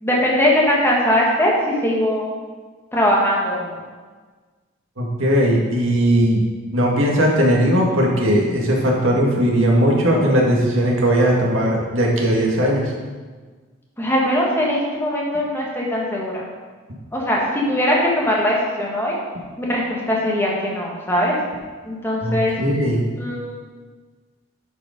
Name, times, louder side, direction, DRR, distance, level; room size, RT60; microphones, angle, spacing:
voice 1, 0.0-2.3 2.9-3.8 14.0-16.4 17.1-19.2 19.6-21.4 21.8-22.5 23.2-23.6, left 1 dB, 10° left, -3 dB, 1.5 m, -20 dB
voice 2, 5.0-6.4 6.7-12.8 22.2-23.0, equal, 80° right, -2 dB, 1.9 m, -18 dB
10.0 x 5.0 x 5.2 m, 1.4 s
head